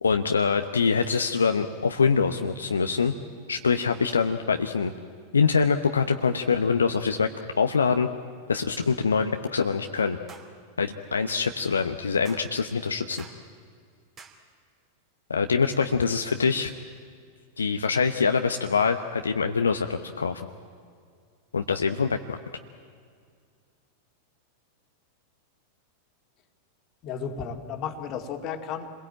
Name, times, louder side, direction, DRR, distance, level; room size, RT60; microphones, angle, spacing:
voice 1, 0.0-3.1 3.5-4.9 5.3-7.3 7.6-8.1 8.5-10.2 10.8-13.2 15.3-16.7 17.6-20.4 21.5-22.4, left 5 dB, 75° left, 6 dB, 0.9 m, -24 dB
voice 2, 2.2-2.7 27.0-28.9, left 7 dB, 35° left, 6 dB, 2.3 m, -34 dB
sound 1, 10.3-10.5 11.3-11.5 12.2-12.5 13.2-13.4 14.2-14.4, right 5 dB, 25° right, 2.9 m, -47 dB
28.0 x 21.5 x 8.9 m, 2.1 s
figure-of-eight pair, 90°, 0 cm